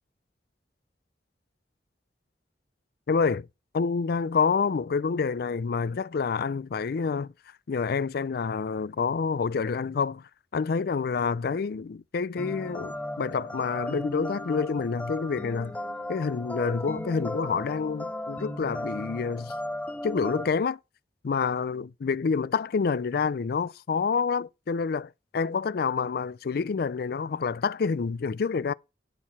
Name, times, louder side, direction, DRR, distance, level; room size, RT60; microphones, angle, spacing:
voice 1, 3.1-3.5 3.7-7.3 7.7-15.8 16.1-19.5 20.0-20.8 21.2-28.7, left 5 dB, 60° left, 0.4 m, -28 dB
sound 1, 12.4-20.5, left 1 dB, 10° left, 0.5 m, -36 dB
11.5 x 4.7 x 5.9 m
head